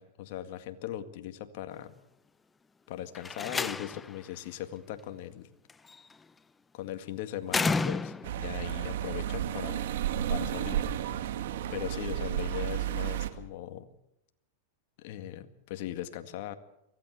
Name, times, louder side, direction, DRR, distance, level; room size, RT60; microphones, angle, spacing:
voice 1, 0.0-1.9 2.9-5.5 6.7-9.8 10.3-10.8 11.7-13.9 15.0-16.5, left 12 dB, 60° left, 9 dB, 1.9 m, -39 dB
Slam, 3.2-4.2 5.7-6.1 7.5-8.5, left 4 dB, 15° left, 0.7 m, -31 dB
sound 1, 8.2-13.3, right 11 dB, 75° right, 2.0 m, -32 dB
24.0 x 16.0 x 8.1 m, 0.82 s
hypercardioid pair, 130°, 0 cm